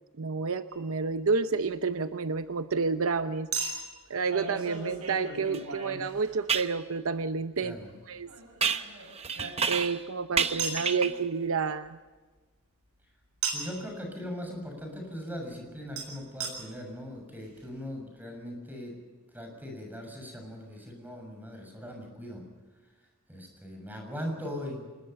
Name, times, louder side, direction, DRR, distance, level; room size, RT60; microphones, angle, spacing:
voice 1, 0.2-3.7 4.1-7.8 8.1-8.3 9.7-12.0, right 4 dB, 65° right, 10 dB, 0.7 m, -30 dB
Chink clink, 0.7-0.8 3.5-6.7 8.3-9.9 10.6-10.9 13.4-13.8 16.0-16.1 16.4-16.5 17.2-17.3 17.4-17.5, right 5 dB, 85° right, 7.1 m, -36 dB
sound 1, 5.5-5.6 6.5-6.8 8.6-10.1 10.4-11.2, right 6 dB, 30° right, 0.8 m, -30 dB
voice 2, 13.5-19.0 19.3-22.4 23.3-24.9, equal, 10° right, 2 dB, 6.8 m, -40 dB
26.0 x 21.0 x 5.7 m, 1.3 s
head